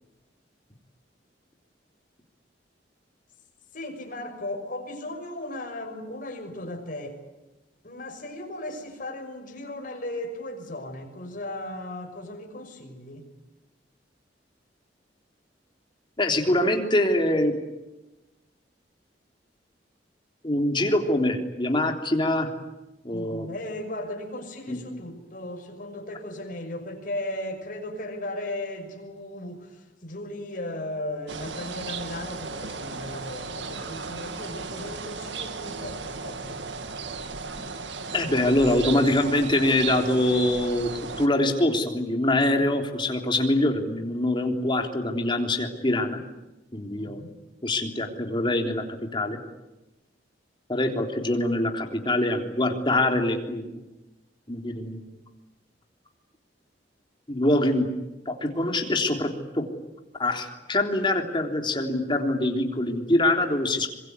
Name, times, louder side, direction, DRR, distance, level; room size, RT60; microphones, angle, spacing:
voice 1, 3.7-7.2 7.8-13.3 23.1-36.6 44.0-44.1 47.0-47.3, left 1 dB, 50° left, 4 dB, 6.1 m, -36 dB
voice 2, 16.2-17.5 20.4-22.5 23.0-23.5 24.7-25.0 38.1-46.2 46.7-47.2 47.6-48.9 49.1-49.4 50.7-53.7 54.5-55.1 57.3-57.9 58.3-59.7 60.2-63.9, left 1 dB, 25° left, 3 dB, 3.6 m, -24 dB
sound 1, 31.3-41.3, right 4 dB, 85° right, 2.1 m, -35 dB
25.5 x 23.0 x 9.6 m, 1.0 s
head